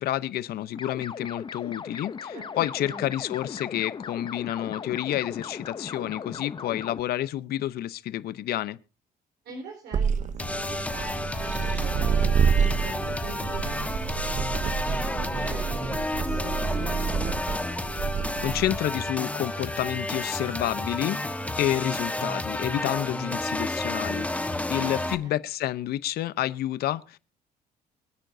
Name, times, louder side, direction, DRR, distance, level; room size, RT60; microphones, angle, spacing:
voice 1, 0.0-8.8 18.4-27.2, left 13 dB, 70° left, 0.8 m, -29 dB
sound 1, 0.7-7.0, left 6 dB, 30° left, 0.7 m, -38 dB
voice 2, 9.4-12.9 13.2-17.5 24.7-25.4, right 3 dB, 75° right, 4.2 m, -44 dB
sound 2, 9.9-18.8, right 7 dB, 45° right, 0.8 m, -28 dB
sound 3, 10.4-25.2, left 1 dB, 10° left, 1.3 m, -31 dB
25.0 x 8.9 x 2.7 m
cardioid pair, 110°, 17 cm